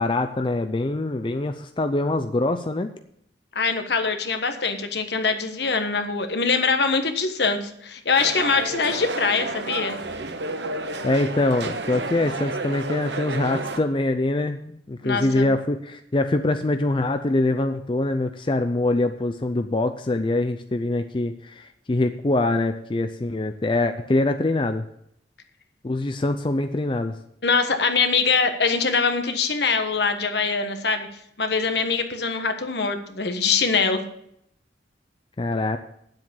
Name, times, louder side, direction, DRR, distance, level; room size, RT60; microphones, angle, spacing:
voice 1, 0.0-2.9 11.0-24.9 25.8-27.2 35.4-35.8, left 2 dB, 30° left, 7 dB, 0.5 m, -24 dB
voice 2, 3.5-10.0 15.0-15.5 27.4-31.1 31.4-34.0, left 4 dB, 70° left, 7 dB, 1.3 m, -23 dB
sound 1, 8.2-13.8, right 2 dB, 75° right, 1.0 m, -31 dB
9.5 x 7.8 x 7.2 m, 0.72 s
head